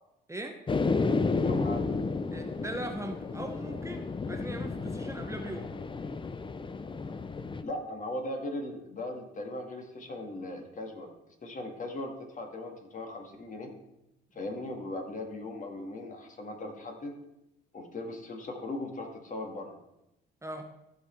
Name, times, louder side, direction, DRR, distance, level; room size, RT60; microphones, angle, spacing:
sound 1, 0.7-7.6, left 4 dB, 25° left, 0.6 m, -32 dB
voice 1, 1.4-1.8 7.6-13.7 14.3-17.1 17.7-19.8, left 1 dB, 40° left, 3 dB, 2.1 m, -38 dB
voice 2, 2.3-5.7 20.4-20.7, right 1 dB, 15° right, 4 dB, 0.9 m, -39 dB
14.5 x 5.5 x 4.5 m, 0.90 s
cardioid pair, 90°, 20 cm